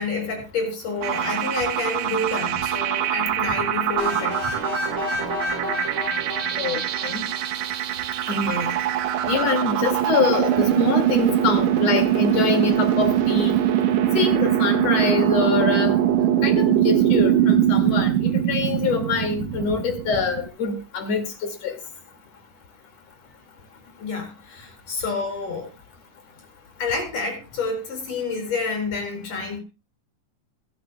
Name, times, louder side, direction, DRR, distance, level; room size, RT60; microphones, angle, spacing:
voice 1, 0.0-4.4 24.0-25.7 26.8-29.6, left 3 dB, 70° left, 3 dB, 6.6 m, -28 dB
sound 1, 1.0-20.5, right 11 dB, 70° right, 1.9 m, -22 dB
sound 2, 4.0-7.7, left 1 dB, 35° right, 8.8 m, -30 dB
voice 2, 6.6-7.2 8.3-8.7 9.3-13.6 14.1-16.0 16.4-21.8, left 5 dB, 55° left, 6 dB, 3.1 m, -25 dB
23.5 x 11.5 x 2.2 m, 0.27 s
omnidirectional pair, 3.8 m